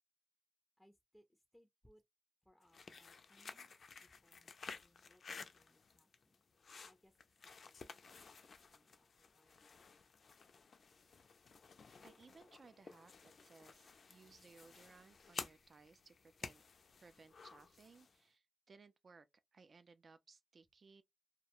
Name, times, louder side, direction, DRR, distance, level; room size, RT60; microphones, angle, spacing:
voice 1, 0.8-2.0 2.4-3.7 4.0-6.4 6.8-9.6, equal, 5° left, 0.4 m, -71 dB
sound 1, 2.6-18.2, left 5 dB, 80° left, 0.3 m, -54 dB
voice 2, 12.0-16.6 17.0-19.3 19.5-21.0, right 4 dB, 65° right, 0.4 m, -63 dB
2.3 x 2.1 x 2.8 m
wide cardioid pair, 120°, 0 cm